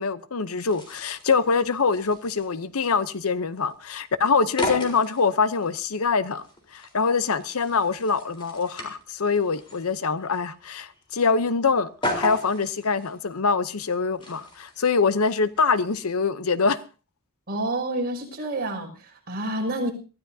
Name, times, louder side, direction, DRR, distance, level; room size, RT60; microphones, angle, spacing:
voice 1, 0.0-6.4 6.7-11.9 12.2-16.8, left 5 dB, 75° left, 0.8 m, -24 dB
sound 1, 0.6-16.1, left 1 dB, 25° left, 3.9 m, -37 dB
voice 2, 17.5-19.9, right 1 dB, 45° right, 6.0 m, -28 dB
23.0 x 15.5 x 2.8 m
head